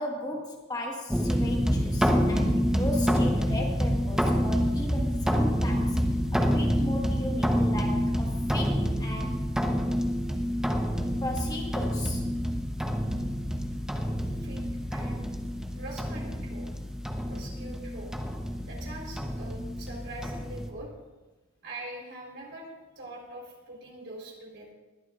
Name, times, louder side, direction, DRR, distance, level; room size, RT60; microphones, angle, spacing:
voice 1, 0.0-6.0 6.3-9.4 11.2-12.3, left 1 dB, 20° left, -1 dB, 1.5 m, -36 dB
sound 1, 1.1-20.7, equal, 5° right, 0.9 m, -27 dB
voice 2, 14.2-15.3 15.7-16.7 17.3-18.1 18.7-20.9 21.6-22.7 23.0-24.7, right 1 dB, 60° right, -2 dB, 3.9 m, -43 dB
20.5 x 11.5 x 2.5 m, 1.1 s
head